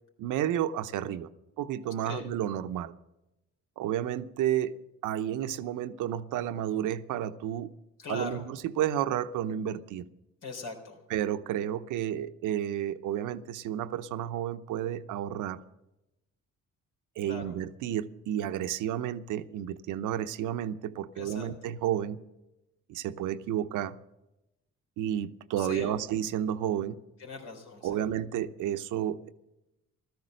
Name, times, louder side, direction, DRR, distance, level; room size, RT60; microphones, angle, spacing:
voice 1, 0.2-1.3 1.6-2.9 3.8-4.8 5.0-7.7 8.1-10.1 11.1-15.6 17.2-22.2 22.9-23.9 25.0-27.0 27.8-29.3, right 11 dB, 90° right, 11 dB, 0.8 m, -31 dB
voice 2, 8.0-8.4 10.4-11.0 17.2-17.5 21.2-21.5 25.6-26.0 27.2-28.0, left 4 dB, 80° left, 3 dB, 3.8 m, -40 dB
15.0 x 13.0 x 6.4 m, 0.94 s
cardioid pair, 90°, 30 cm